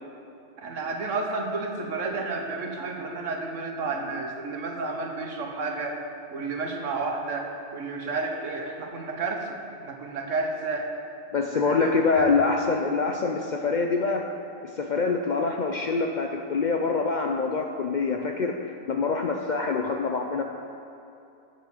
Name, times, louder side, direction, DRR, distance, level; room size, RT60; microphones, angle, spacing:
voice 1, 0.6-6.0 6.3-9.5 9.8-10.9 11.5-12.3, right 3 dB, 90° right, 2 dB, 1.4 m, -31 dB
voice 2, 11.3-14.3 14.6-20.4, left 4 dB, 60° left, 3 dB, 0.5 m, -25 dB
7.1 x 6.3 x 7.1 m, 2.7 s
omnidirectional pair, 1.3 m